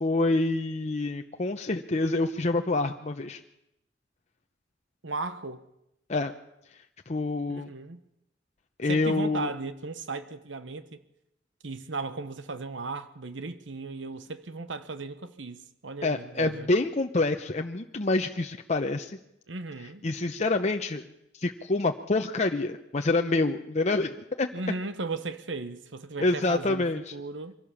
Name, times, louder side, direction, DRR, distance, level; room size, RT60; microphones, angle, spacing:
voice 1, 0.0-3.4 6.1-6.3 7.1-7.7 8.8-9.5 16.0-19.2 20.0-21.0 21.3-24.5 26.2-27.0, left 2 dB, 40° left, 0.8 m, -27 dB
voice 2, 5.0-5.6 7.5-8.0 8.9-11.0 11.6-16.7 19.5-20.0 24.5-27.5, right 3 dB, 85° right, 1.1 m, -36 dB
24.0 x 16.5 x 7.2 m
head